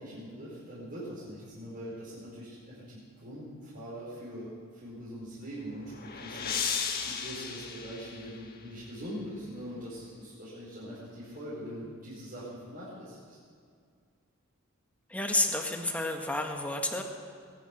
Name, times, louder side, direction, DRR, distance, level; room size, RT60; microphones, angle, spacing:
voice 1, 0.0-6.7 7.0-13.4, equal, 45° right, -9 dB, 4.9 m, -42 dB
sound 1, 5.4-8.8, left 6 dB, 45° left, 1.4 m, -36 dB
voice 2, 15.1-17.0, left 2 dB, 5° left, 2 dB, 1.5 m, -30 dB
21.0 x 10.5 x 6.3 m, 2.2 s
head